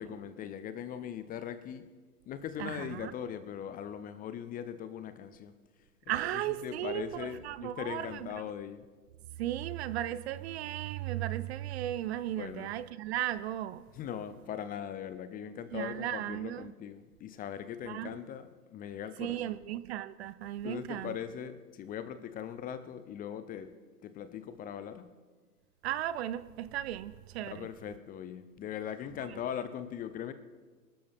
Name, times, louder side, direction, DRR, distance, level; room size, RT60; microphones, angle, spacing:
voice 1, 0.0-1.8 2.3-5.5 6.1-8.8 12.4-12.7 13.9-19.5 20.6-23.7 24.0-25.1 27.5-30.3, left 9 dB, 20° left, 0.6 m, -40 dB
voice 2, 2.6-3.1 6.1-8.4 9.4-13.8 15.7-16.7 17.9-18.2 19.2-21.1 25.8-27.7, right 13 dB, 45° right, 0.5 m, -36 dB
26.0 x 12.5 x 3.6 m
hypercardioid pair, 105°, 48 cm